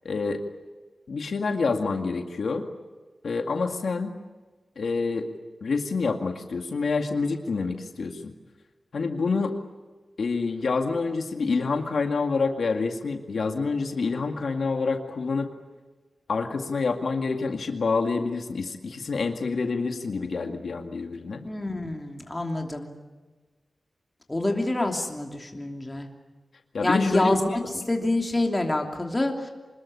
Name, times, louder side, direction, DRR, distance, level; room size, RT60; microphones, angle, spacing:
voice 1, 0.0-0.4 1.1-2.7 3.2-4.1 4.8-5.3 5.6-8.3 8.9-9.6 10.2-15.5 16.3-21.4 26.7-27.6, left 4 dB, 75° left, 4 dB, 2.1 m, -27 dB
voice 2, 21.4-22.9 24.3-26.1 26.8-27.6 27.9-29.5, left 2 dB, 20° left, 2 dB, 2.9 m, -26 dB
26.0 x 20.5 x 9.9 m, 1.3 s
wide cardioid pair, 130°, 0 cm